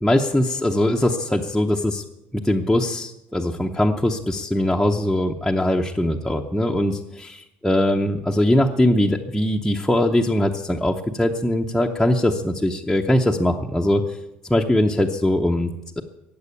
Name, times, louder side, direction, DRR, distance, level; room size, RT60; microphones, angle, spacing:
voice 1, 0.0-2.0 2.3-14.2 14.5-16.0, left 1 dB, ahead, -2 dB, 0.7 m, -21 dB
15.0 x 9.0 x 8.4 m, 0.91 s
cardioid pair, 145°, 5 cm